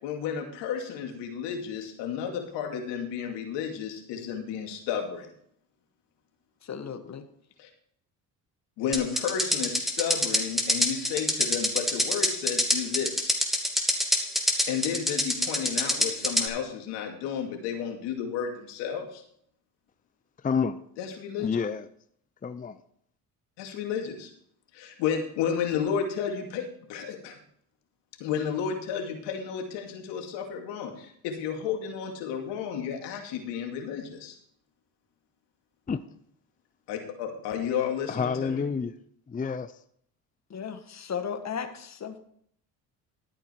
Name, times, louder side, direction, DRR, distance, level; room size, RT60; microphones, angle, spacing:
voice 1, 0.0-5.3 7.6-7.7 8.8-13.4 14.7-19.2 21.0-21.5 23.6-24.3 24.7-27.4 28.2-34.3 36.9-38.7, left 7 dB, 85° left, 3 dB, 2.5 m, -32 dB
voice 2, 6.6-7.3 40.5-42.2, left 7 dB, 40° left, 8 dB, 1.6 m, -35 dB
sound 1, 8.9-16.5, left 1 dB, ahead, 2.7 m, -25 dB
voice 3, 20.4-20.8 21.4-21.9 22.4-22.8 35.9-36.0 38.1-38.9 39.3-39.7, left 5 dB, 20° left, 11 dB, 0.6 m, -28 dB
13.0 x 8.9 x 4.6 m, 0.66 s
supercardioid pair, 75°, 41 cm